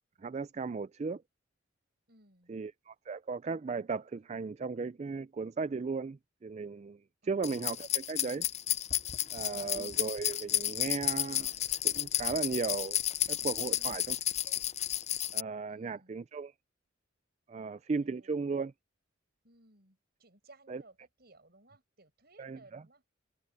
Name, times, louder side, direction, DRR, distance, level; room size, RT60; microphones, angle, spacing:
voice 1, 0.2-1.2 2.5-8.5 9.3-11.5 11.8-13.0 13.3-14.2 14.5-14.6 15.3-16.5 17.5-18.7 20.7-20.8 22.4-22.8, right 4 dB, 35° right, 0.3 m, -36 dB
voice 2, 2.1-2.6 13.6-14.2 15.7-16.2 17.5-18.5 19.4-23.0, right 2 dB, 50° right, 7.7 m, -61 dB
sound 1, 7.4-15.4, left 12 dB, 35° left, 0.5 m, -32 dB
head